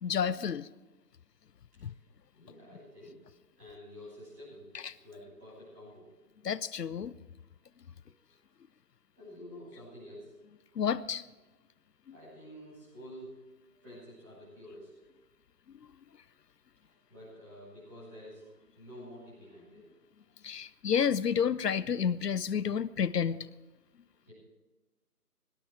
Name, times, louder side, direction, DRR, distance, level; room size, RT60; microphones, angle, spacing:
voice 1, 0.0-0.7 1.8-1.9 4.8-4.9 6.4-7.1 10.8-11.2 20.4-23.4, left 7 dB, 85° left, 0.7 m, -30 dB
voice 2, 2.3-3.2 3.5-4.8 5.0-6.1 8.0-8.4 9.2-10.4 12.1-13.4 13.7-15.0 16.8-20.0 24.2-24.3, equal, 10° right, 6.8 m, -50 dB
18.5 x 11.5 x 4.9 m
figure-of-eight pair, 175°, 47 cm